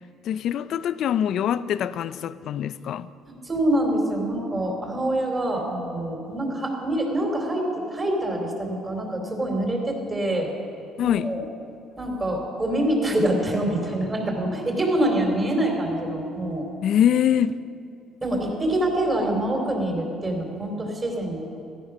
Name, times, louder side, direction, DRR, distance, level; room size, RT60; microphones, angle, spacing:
voice 1, 0.2-3.1 11.0-11.3 16.8-17.6, left 9 dB, 60° left, 0.5 m, -23 dB
voice 2, 3.3-10.5 11.0-11.4 12.0-16.7 18.2-21.4, right 1 dB, 20° right, 3.7 m, -25 dB
16.0 x 14.5 x 6.2 m
cardioid pair, 115°, 0 cm